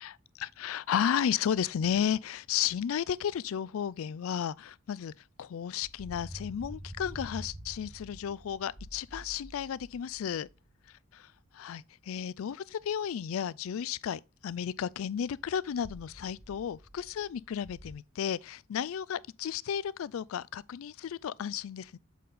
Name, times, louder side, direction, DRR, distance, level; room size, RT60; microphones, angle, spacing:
voice 1, 0.0-5.1 5.4-10.5 11.1-11.3 11.5-22.0, left 8 dB, 70° left, 0.3 m, -33 dB
sound 1, 5.8-10.9 15.2-17.9, equal, 15° right, 1.1 m, -47 dB
7.4 x 4.2 x 3.7 m
head